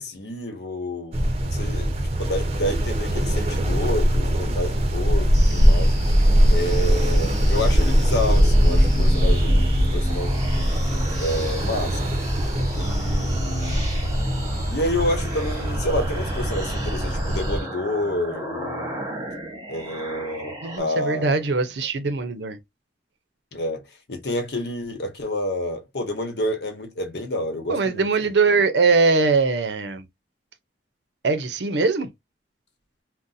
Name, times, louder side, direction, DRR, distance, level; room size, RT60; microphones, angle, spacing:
voice 1, 0.0-1.9 2.2-5.9 6.5-10.4 11.2-12.0 12.7-13.8 14.7-19.1 19.7-21.4 23.5-23.8 24.1-28.1 28.5-28.6, left 1 dB, 70° left, 1.0 m, -29 dB
sound 1, 1.1-17.6, equal, 35° right, 0.6 m, -21 dB
sound 2, 5.3-20.8, right 1 dB, 20° right, 1.0 m, -36 dB
sound 3, 8.7-17.2, left 1 dB, 20° left, 0.4 m, -34 dB
voice 2, 20.6-22.6 27.7-30.0 31.2-32.1, right 4 dB, 80° right, 0.6 m, -21 dB
2.6 x 2.1 x 3.9 m
head